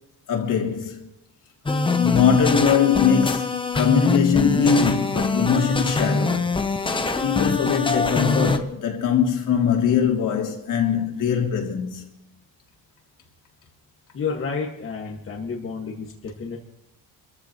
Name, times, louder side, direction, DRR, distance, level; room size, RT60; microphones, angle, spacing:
voice 1, 0.3-1.1 2.0-6.5 6.8-12.0, left 7 dB, 55° left, 3.0 m, -21 dB
sound 1, 1.7-8.6, left 3 dB, 15° left, 0.8 m, -24 dB
voice 2, 14.1-16.6, left 5 dB, 35° left, 1.8 m, -30 dB
27.0 x 14.5 x 3.1 m
cardioid pair, 165°, 38 cm